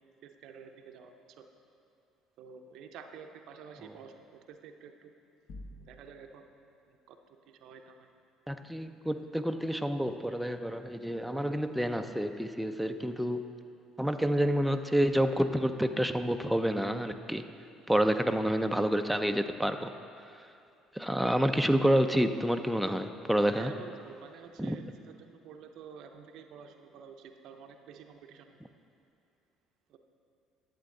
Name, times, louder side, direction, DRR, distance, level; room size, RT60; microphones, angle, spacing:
voice 1, 0.2-1.5 2.4-5.1 5.8-6.5 6.9-7.2 7.5-8.1 23.5-28.7 29.9-30.0, right 6 dB, 65° right, 6 dB, 0.6 m, -50 dB
sound 1, 5.5-6.5, left 1 dB, 60° left, 1.1 m, -47 dB
voice 2, 8.5-13.5 14.0-17.4 17.9-19.9 20.9-23.7 24.6-24.8, equal, ahead, 6 dB, 0.4 m, -28 dB
11.0 x 7.6 x 3.8 m, 2.5 s
hypercardioid pair, 60°, 0 cm